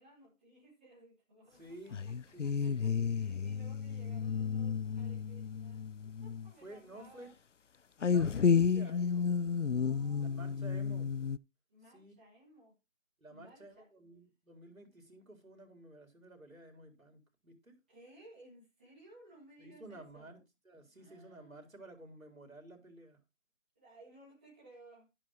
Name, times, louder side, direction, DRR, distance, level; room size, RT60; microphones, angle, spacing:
voice 1, 0.0-2.1 2.4-5.8 6.2-7.3 9.7-10.6 11.7-12.8 13.3-13.9 17.9-20.4 20.9-21.7 23.7-25.1, right 1 dB, 5° right, 2.4 m, -59 dB
voice 2, 1.5-2.0 2.3-2.8 6.6-7.3 8.0-9.3 10.2-11.1 11.9-12.1 13.2-17.7 19.6-20.4 20.6-23.2, right 2 dB, 90° right, 4.2 m, -53 dB
sound 1, 1.9-6.5 8.0-11.4, left 6 dB, 65° left, 0.5 m, -32 dB
12.0 x 9.7 x 3.0 m
figure-of-eight pair, 175°, 40 cm